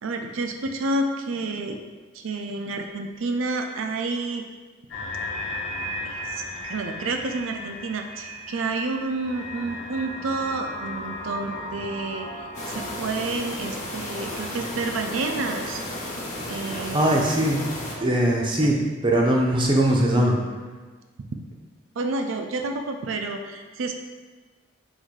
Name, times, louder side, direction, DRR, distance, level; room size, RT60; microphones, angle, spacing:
voice 1, 0.0-1.8 2.1-4.5 6.0-6.4 6.7-15.8 16.5-17.2 18.0-18.1 18.6-18.7 22.0-24.0, right 3 dB, 80° right, 5 dB, 0.5 m, -29 dB
sound 1, 4.9-13.0, left 1 dB, 70° left, 1.0 m, -35 dB
sound 2, 12.5-18.0, left 1 dB, 35° left, 0.8 m, -33 dB
voice 2, 16.6-17.6 18.0-20.4, right 1 dB, 25° right, -1 dB, 0.6 m, -21 dB
4.0 x 2.6 x 4.6 m, 1.4 s
head